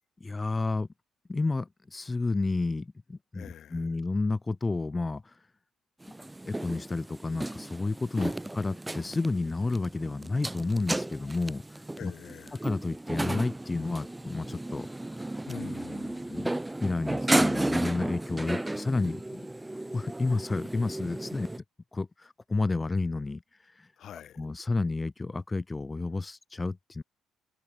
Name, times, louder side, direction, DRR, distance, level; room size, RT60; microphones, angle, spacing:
voice 1, 0.2-0.9 1.3-3.5 3.7-5.4 6.4-12.1 12.6-14.9 15.2-15.3 16.3-16.5 16.8-19.4 19.9-21.5 21.9-23.9 24.4-27.0, left 3 dB, 20° left, 2.0 m, -31 dB
voice 2, 3.3-3.9 8.1-8.4 12.0-12.7 15.5-16.4 24.0-24.4, left 10 dB, 65° left, 5.3 m, -45 dB
sound 1, 6.0-21.6, right 1 dB, 10° right, 0.6 m, -33 dB
cardioid pair, 90°, 0 cm